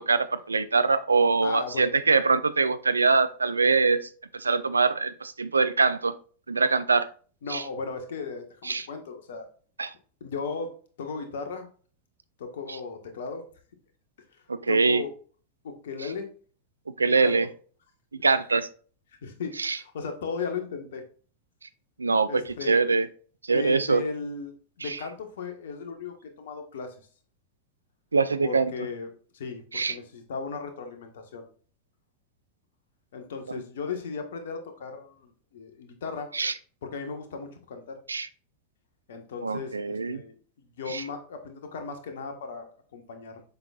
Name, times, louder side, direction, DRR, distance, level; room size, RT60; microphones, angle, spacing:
voice 1, 0.0-6.1 6.5-7.1 7.5-7.6 8.6-8.9 9.8-9.9 14.5-15.0 17.0-17.5 18.2-18.7 19.6-19.8 22.0-23.1 23.4-24.0 24.8-25.0 28.1-28.7 29.7-29.9 36.3-36.5 38.1-38.3 39.4-40.2 40.9-41.0, right 4 dB, 75° right, 13 dB, 0.4 m, -23 dB
voice 2, 1.4-1.9 7.4-9.5 10.2-10.7 11.0-11.7 12.4-13.4 14.7-15.1 15.6-16.3 17.2-17.4 19.2-21.0 22.3-22.7 23.5-26.9 28.4-31.5 33.1-36.3 36.8-38.0 39.1-43.4, left 5 dB, 60° left, 5 dB, 1.3 m, -36 dB
7.5 x 5.8 x 2.4 m, 0.41 s
figure-of-eight pair, 90°, 0 cm